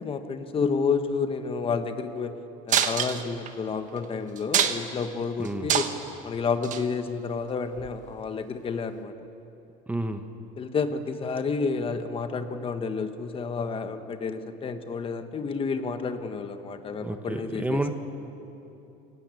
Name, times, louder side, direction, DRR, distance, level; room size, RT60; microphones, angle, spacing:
voice 1, 0.0-2.3 2.7-5.9 6.2-9.1 10.6-17.8, left 5 dB, 30° left, 8 dB, 1.3 m, -30 dB
sound 1, 2.7-3.5 4.0-4.1 4.4-5.0 5.4-6.1 6.6-6.8 7.8-7.9, right 9 dB, 45° right, 1.4 m, -25 dB
voice 2, 5.4-5.7 9.9-10.2 17.0-17.9, right 1 dB, 10° right, 7 dB, 1.1 m, -30 dB
22.5 x 18.5 x 8.5 m, 3.0 s
supercardioid pair, 115°, 18 cm